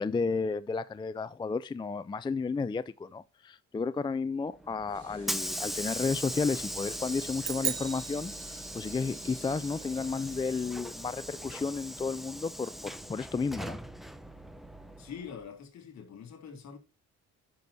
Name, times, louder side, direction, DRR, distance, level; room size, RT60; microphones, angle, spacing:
voice 1, 0.0-13.8, left 4 dB, 15° left, 0.4 m, -32 dB
Hiss / Sliding door, 4.6-15.4, equal, ahead, 0.8 m, -40 dB
Water tap faucet / Sink (filling or washing), 4.7-12.7, right 7 dB, 80° right, 3.1 m, -55 dB
sound 1, 7.4-9.1, right 11 dB, 60° right, 1.0 m, -36 dB
voice 2, 15.0-16.8, left 7 dB, 60° left, 2.8 m, -44 dB
10.5 x 6.2 x 2.7 m
cardioid pair, 90°, 30 cm